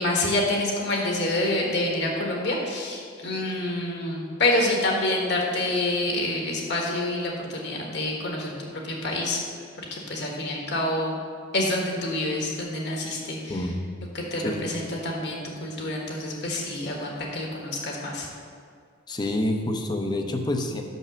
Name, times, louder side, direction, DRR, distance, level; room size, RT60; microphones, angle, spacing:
voice 1, 0.0-9.4 9.9-11.2 11.5-13.6 14.1-18.3, left 1 dB, 60° left, -1 dB, 1.4 m, -27 dB
voice 2, 14.4-14.8 19.1-20.8, left 1 dB, 20° left, 4 dB, 0.6 m, -28 dB
6.1 x 5.4 x 6.2 m, 2.2 s
head